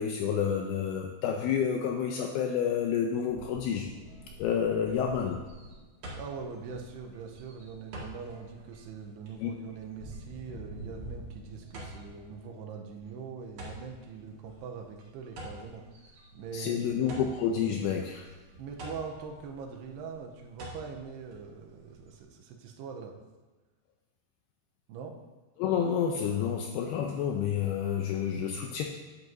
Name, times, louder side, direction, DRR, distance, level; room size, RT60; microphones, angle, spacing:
voice 1, 0.0-3.9 4.4-5.4 9.4-9.5 16.5-18.3 25.6-28.8, left 8 dB, 85° left, 2 dB, 2.3 m, -29 dB
sound 1, 3.3-12.3, right 1 dB, 65° left, 3.2 m, -49 dB
sound 2, 4.1-22.2, equal, 50° right, 2.2 m, -49 dB
voice 2, 6.2-17.0 18.6-23.1 24.9-25.2, right 6 dB, 80° right, 2 dB, 2.7 m, -42 dB
11.0 x 9.3 x 2.7 m, 1.3 s
omnidirectional pair, 5.1 m